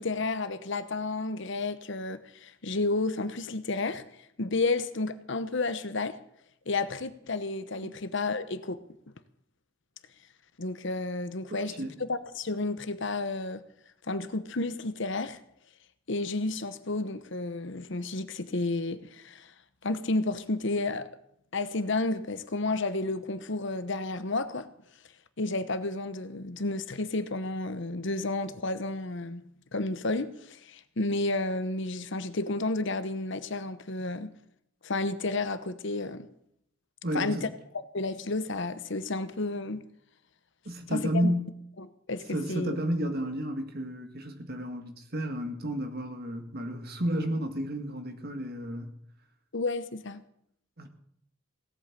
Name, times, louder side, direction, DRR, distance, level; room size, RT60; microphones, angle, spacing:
voice 1, 0.0-4.0 4.4-6.2 6.7-8.8 10.6-11.7 12.0-13.6 14.1-15.4 16.1-19.5 19.8-21.1 21.5-24.7 25.4-29.4 29.7-34.3 34.8-36.3 37.1-37.5 37.7-39.8 40.9-41.3 41.8-42.8 49.5-50.2, left 2 dB, 60° left, 12 dB, 1.0 m, -31 dB
voice 2, 37.0-37.5 40.7-41.5 42.3-49.0 50.8-50.9, equal, 45° right, 7 dB, 1.9 m, -32 dB
17.5 x 8.6 x 7.4 m, 0.73 s
head